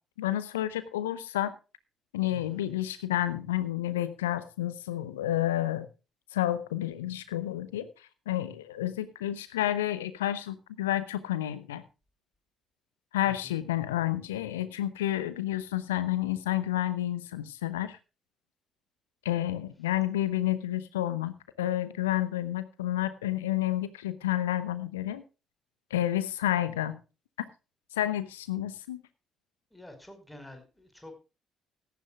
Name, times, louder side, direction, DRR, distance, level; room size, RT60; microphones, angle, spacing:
voice 1, 0.2-1.5 2.1-5.9 6.3-7.9 8.3-11.8 13.1-18.0 19.2-25.2 25.9-27.0 28.0-29.0, left 13 dB, 75° left, 14 dB, 0.9 m, -30 dB
voice 2, 2.3-2.7 13.2-13.6 29.7-31.2, left 2 dB, 5° left, 6 dB, 5.0 m, -48 dB
17.5 x 13.5 x 2.4 m, 0.31 s
figure-of-eight pair, 45°, 0 cm